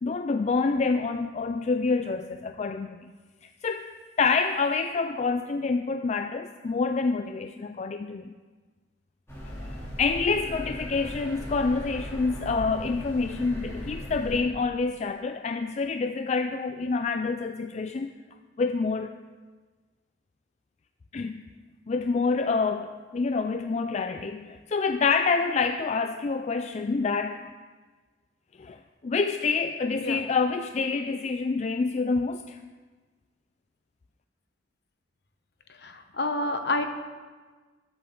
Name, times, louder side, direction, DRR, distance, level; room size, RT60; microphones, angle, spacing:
voice 1, 0.0-3.0 3.6-3.9 4.2-8.3 9.6-18.1 18.6-19.2 21.1-21.4 21.9-27.4 28.6-32.6, left 4 dB, 40° left, 8 dB, 0.4 m, -27 dB
sound 1, 9.3-14.4, equal, 15° left, 2.9 m, -38 dB
voice 2, 36.2-36.9, left 2 dB, 60° left, 7 dB, 1.1 m, -27 dB
20.5 x 8.1 x 3.8 m, 1.4 s
head